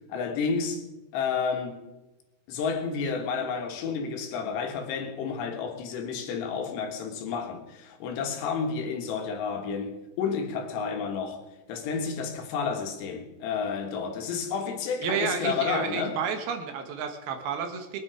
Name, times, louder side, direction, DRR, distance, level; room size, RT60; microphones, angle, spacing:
voice 1, 0.1-0.8 1.1-1.8 2.5-11.4 11.7-16.2, left 5 dB, 85° left, 3.8 m, -31 dB
voice 2, 15.0-18.0, right 6 dB, 70° right, 3.1 m, -31 dB
22.0 x 9.4 x 4.9 m
omnidirectional pair, 4.8 m